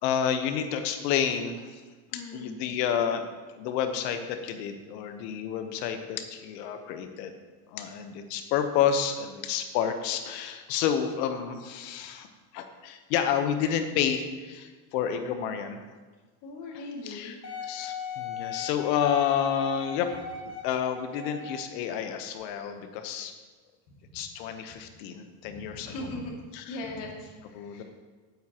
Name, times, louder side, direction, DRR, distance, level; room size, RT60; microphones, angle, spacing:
voice 1, 0.0-1.8 2.1-3.2 3.5-7.3 7.7-12.3 12.5-15.9 17.0-20.1 20.6-23.3 24.1-25.9 26.5-26.8 27.5-27.8, left 8 dB, 80° left, 7 dB, 1.1 m, -30 dB
voice 2, 2.1-2.5 16.4-17.4 25.4-26.3 26.7-27.8, left 2 dB, 55° left, -1 dB, 2.5 m, -39 dB
Wind instrument woodwind instrument, 17.4-21.7 22.4-22.5, left 4 dB, 35° left, 1.7 m, -39 dB
12.5 x 9.3 x 3.0 m, 1.4 s
cardioid pair, 140°, 50 cm